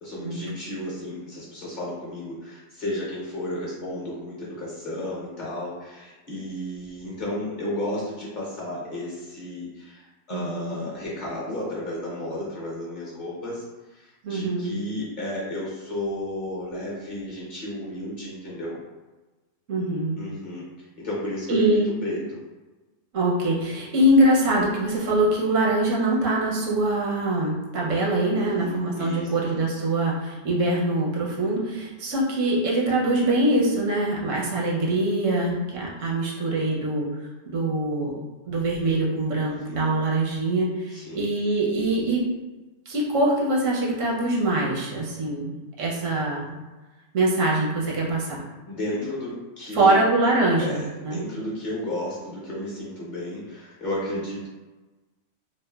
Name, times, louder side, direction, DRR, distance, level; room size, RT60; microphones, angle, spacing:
voice 1, 0.0-18.8 20.2-21.7 22.0-22.4 28.3-29.3 39.5-39.9 40.9-41.3 48.7-49.9 50.6-54.5, left 1 dB, 50° left, -6 dB, 0.7 m, -33 dB
voice 2, 10.3-10.8 14.2-14.7 19.7-20.2 21.5-21.9 23.1-37.1 37.5-38.1 38.5-42.3 42.9-46.6 47.1-48.4 49.7-51.2, right 1 dB, 80° right, -3 dB, 1.0 m, -23 dB
3.0 x 2.0 x 2.2 m, 1.2 s
omnidirectional pair, 1.3 m